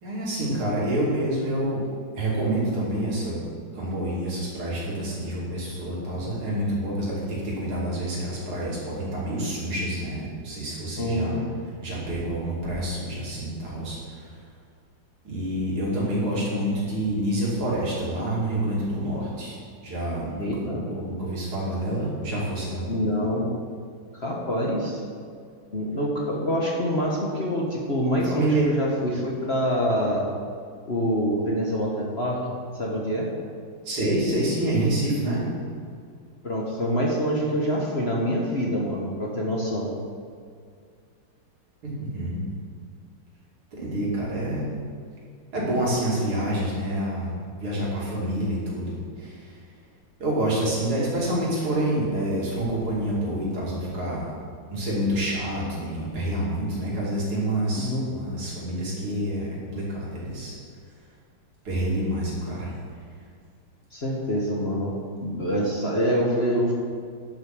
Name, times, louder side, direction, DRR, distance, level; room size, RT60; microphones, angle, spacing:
voice 1, 0.0-1.9 2.2-3.4 3.7-11.4 11.8-14.4 15.3-22.8 28.3-28.6 33.8-35.5 41.8-42.5 43.7-44.7 45.5-47.3 47.6-49.6 50.2-54.3 54.7-60.6 61.7-62.7, right 1 dB, 85° right, -6 dB, 3.6 m, -27 dB
voice 2, 11.0-11.4 20.4-20.8 22.9-23.5 24.1-25.0 25.7-30.2 30.9-33.3 36.4-39.9 57.8-58.0 63.9-66.7, equal, 35° left, -3 dB, 1.2 m, -26 dB
10.5 x 6.6 x 6.1 m, 2.2 s
omnidirectional pair, 2.3 m